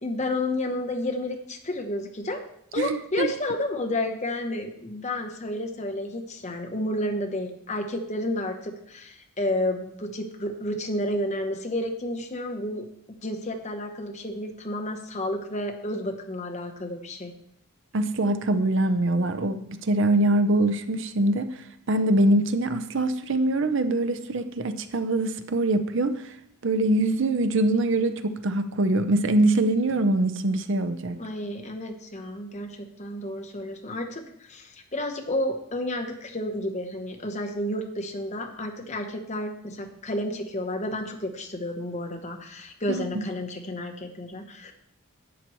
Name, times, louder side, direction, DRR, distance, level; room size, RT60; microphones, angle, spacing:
voice 1, 0.0-2.4 2.7-12.9 13.2-17.3 31.2-44.7, left 1 dB, 30° left, 4 dB, 0.9 m, -31 dB
voice 2, 2.8-3.3 17.9-26.3 26.6-31.2 42.9-43.0, right 1 dB, 55° right, 9 dB, 0.6 m, -23 dB
11.0 x 8.4 x 3.1 m, 0.75 s
head